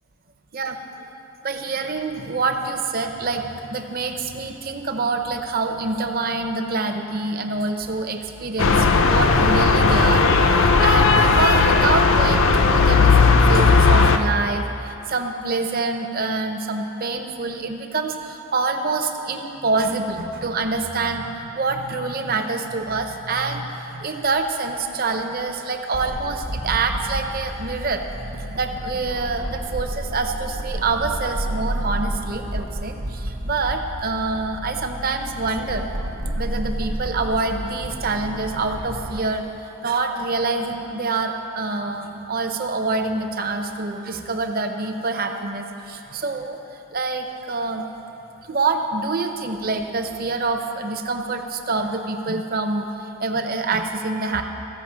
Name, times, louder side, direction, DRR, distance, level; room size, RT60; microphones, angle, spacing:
voice 1, 1.4-28.0 28.5-35.9 36.3-46.6 46.9-47.9 48.4-54.4, right 3 dB, 40° right, 5 dB, 0.6 m, -26 dB
sound 1, 8.6-14.2, left 4 dB, 60° left, 0.5 m, -16 dB
sound 2, 25.9-39.2, right 1 dB, 65° right, 1.0 m, -30 dB
14.0 x 5.5 x 7.3 m, 3.0 s
head